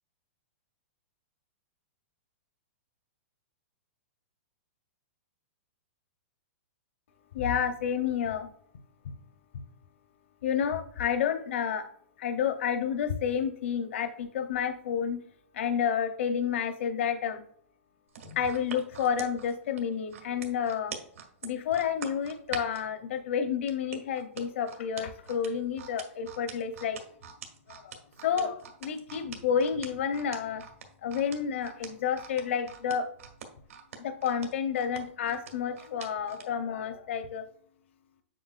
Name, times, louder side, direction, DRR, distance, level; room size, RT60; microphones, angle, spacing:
voice 1, 7.3-8.5 10.4-11.9 12.2-15.2 15.5-17.4 18.2-20.9 21.4-27.0 27.7-27.9 28.2-30.6 31.0-33.1 34.0-37.5, left 7 dB, 65° left, 7 dB, 0.7 m, -30 dB
sound 1, 18.1-22.9 23.7-36.5 36.9-37.1, right 7 dB, 85° right, 1.6 m, -43 dB
7.7 x 6.8 x 2.4 m, 0.63 s
hypercardioid pair, 170°, 7 cm